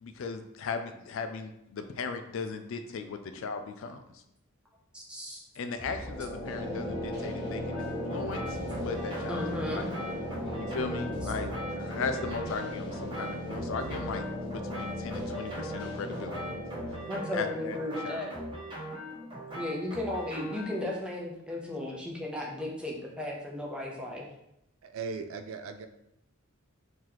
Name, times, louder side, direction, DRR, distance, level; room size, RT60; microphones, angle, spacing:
voice 1, 0.0-4.2 5.6-9.9 10.6-16.6 17.3-17.8 18.0-18.2, left 4 dB, 65° left, 8 dB, 0.4 m, -37 dB
voice 2, 4.9-5.4 9.3-9.9 17.1-18.3 19.5-24.3, left 1 dB, 5° right, -2 dB, 0.6 m, -35 dB
sound 1, 5.8-19.5, equal, 25° left, 1.0 m, -37 dB
sound 2, 7.7-20.9, equal, 25° right, 1.0 m, -41 dB
voice 3, 24.8-25.9, right 5 dB, 70° right, 8 dB, 0.4 m, -38 dB
3.0 x 2.8 x 3.9 m, 0.82 s
head